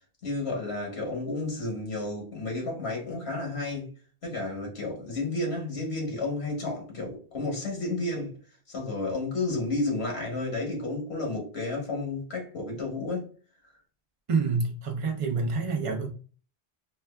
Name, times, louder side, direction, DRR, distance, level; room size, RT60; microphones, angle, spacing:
voice 1, 0.2-3.9 4.2-8.3 8.7-13.3, left 2 dB, 75° left, 1.4 m, -31 dB
voice 2, 14.3-16.1, right 4 dB, 40° right, 0.6 m, -27 dB
4.4 x 2.4 x 2.2 m
omnidirectional pair, 1.1 m